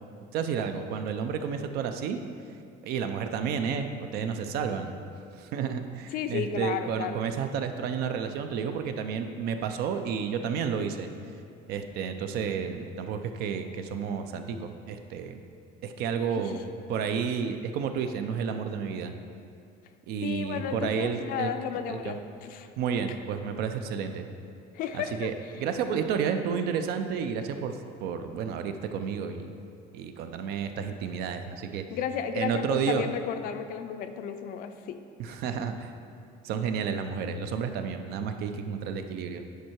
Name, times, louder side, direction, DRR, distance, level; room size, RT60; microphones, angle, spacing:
voice 1, 0.3-2.2 2.8-4.9 5.4-11.1 11.7-15.4 15.8-16.6 16.9-19.1 20.1-21.5 21.9-22.2 22.8-24.3 24.9-29.5 29.9-31.8 32.3-33.1 35.2-35.9 36.4-39.4, right 6 dB, 55° right, 7 dB, 0.5 m, -31 dB
voice 2, 6.1-7.2 16.4-16.6 20.2-22.7 24.7-25.3 31.9-35.0 35.3-35.4, left 8 dB, 50° left, 8 dB, 0.4 m, -33 dB
9.3 x 4.6 x 4.5 m, 2.4 s
cardioid pair, 165°, 19 cm